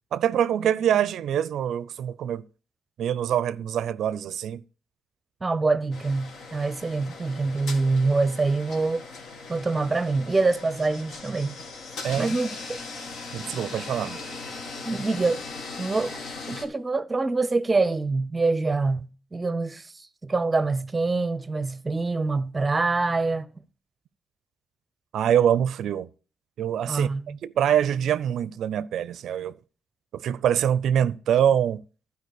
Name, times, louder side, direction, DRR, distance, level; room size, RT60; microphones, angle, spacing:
voice 1, 0.1-2.4 3.0-4.6 12.0-12.4 13.3-14.2 25.1-26.1 26.6-27.1 27.4-29.6 30.1-31.8, right 9 dB, 70° right, 0.4 m, -24 dB
voice 2, 5.4-9.1 9.5-11.5 12.2-12.8 14.9-15.4 15.8-16.2 16.5-23.5 26.9-27.4, right 3 dB, 25° right, 0.6 m, -25 dB
sound 1, 5.9-16.6, left 3 dB, 75° left, 2.0 m, -39 dB
12.5 x 4.8 x 6.5 m
cardioid pair, 90°, 0 cm